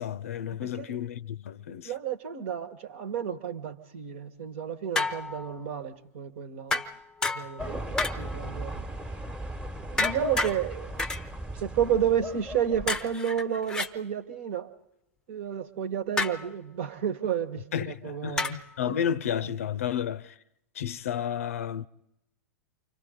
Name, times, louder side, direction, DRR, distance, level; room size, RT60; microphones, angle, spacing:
voice 1, 0.0-1.9 17.7-20.4 20.7-21.9, left 9 dB, 60° left, 0.7 m, -32 dB
voice 2, 0.6-1.0 1.8-6.8 7.3-8.8 9.9-10.9 11.6-14.7 15.3-18.6 18.9-19.0, right 9 dB, 50° right, 1.4 m, -31 dB
sound 1, 5.0-5.5 6.7-7.7 8.0-8.5 10.0-10.6 11.0-11.2 12.9-13.9 16.2-16.5 18.4-18.7, left 3 dB, 10° left, 0.8 m, -30 dB
sound 2, 7.6-13.1, equal, 10° right, 1.3 m, -37 dB
29.0 x 25.5 x 3.9 m
figure-of-eight pair, 100°, 8 cm